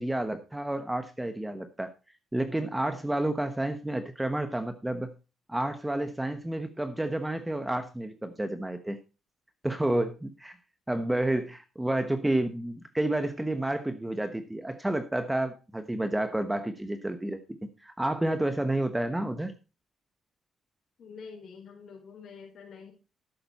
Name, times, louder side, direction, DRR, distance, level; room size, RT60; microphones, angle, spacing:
voice 1, 0.0-1.9 2.3-5.1 5.5-9.0 9.6-10.6 10.9-19.5, right 1 dB, 10° right, 9 dB, 1.1 m, -30 dB
voice 2, 21.0-22.9, left 5 dB, 60° left, 0 dB, 4.6 m, -46 dB
12.0 x 8.9 x 4.2 m, 0.30 s
cardioid pair, 90°, 0 cm